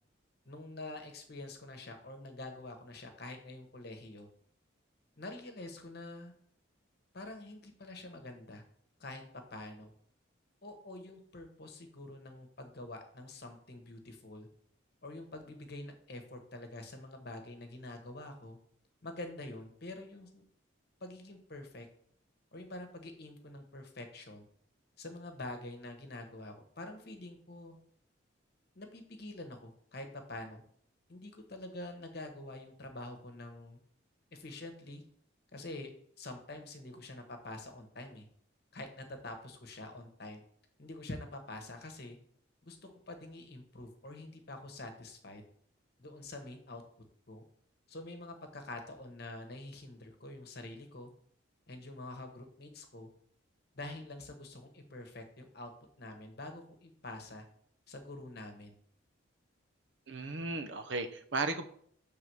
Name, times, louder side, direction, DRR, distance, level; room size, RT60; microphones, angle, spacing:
voice 1, 0.4-4.3 5.2-6.3 7.1-8.6 9.0-9.2 9.5-9.9 10.6-14.5 15.0-18.6 19.0-20.4 21.0-21.9 22.5-24.5 25.0-27.8 28.7-30.6 31.1-33.8 34.3-35.0 35.5-35.9 36.2-38.3 38.7-40.4 40.8-42.2 42.6-45.4 46.0-46.8 47.3-47.4 47.9-51.1 51.7-53.1 53.7-55.7 56.0-57.5 57.9-58.8, left 2 dB, 50° left, 5 dB, 1.1 m, -46 dB
voice 2, 60.1-61.6, right 3 dB, 65° right, 9 dB, 0.6 m, -35 dB
6.7 x 3.6 x 6.1 m, 0.62 s
head